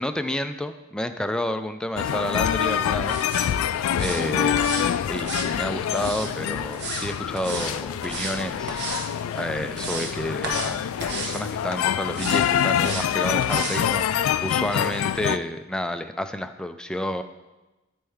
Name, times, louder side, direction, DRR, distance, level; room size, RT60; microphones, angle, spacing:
voice 1, 0.0-3.3 4.0-4.7 5.1-8.8 9.3-17.2, left 1 dB, 5° left, 8 dB, 0.3 m, -30 dB
sound 1, 2.0-15.4, left 9 dB, 90° left, 0.3 m, -26 dB
sound 2, 3.0-3.5 3.9-4.2 4.5-4.9 5.2-6.3 6.7-7.1 7.3-7.7 8.0-8.4 8.7-9.1 9.5-10.1 10.4-10.7 11.0-11.4 12.1-12.4 12.8-13.1 13.4-13.8 14.2-14.3, right 3 dB, 55° right, 1.0 m, -33 dB
12.5 x 4.3 x 3.5 m, 1.1 s
head